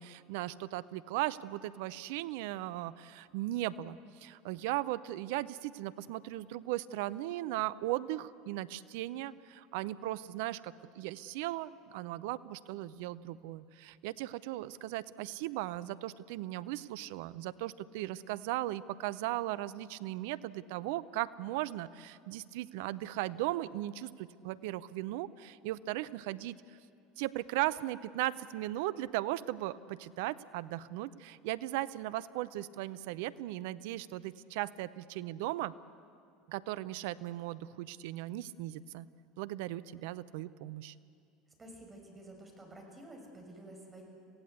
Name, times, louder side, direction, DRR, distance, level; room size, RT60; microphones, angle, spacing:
voice 1, 0.0-26.6 27.2-35.7 36.5-39.1 39.4-40.9, right 15 dB, 65° right, 17 dB, 0.6 m, -37 dB
voice 2, 41.6-44.0, right 1 dB, 20° right, 2 dB, 6.5 m, -50 dB
27.0 x 16.5 x 8.3 m, 2.4 s
hypercardioid pair, 75°, 0 cm